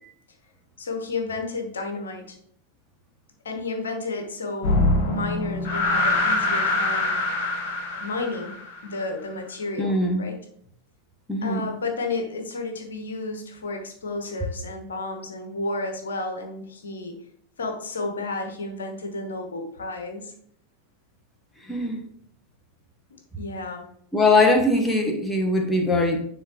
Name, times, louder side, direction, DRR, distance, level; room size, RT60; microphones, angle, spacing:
voice 1, 0.8-2.4 3.4-7.2 8.0-8.5 8.8-10.4 11.4-17.2 17.6-20.3 23.4-23.9, left 3 dB, 65° left, 4 dB, 1.2 m, -32 dB
sound 1, 4.6-9.0, left 2 dB, 50° left, 1.3 m, -24 dB
voice 2, 9.8-10.3 11.3-11.7 21.7-22.0 24.1-26.2, left 2 dB, 5° left, 1 dB, 1.2 m, -21 dB
10.0 x 3.7 x 3.0 m, 0.65 s
figure-of-eight pair, 90°, 0 cm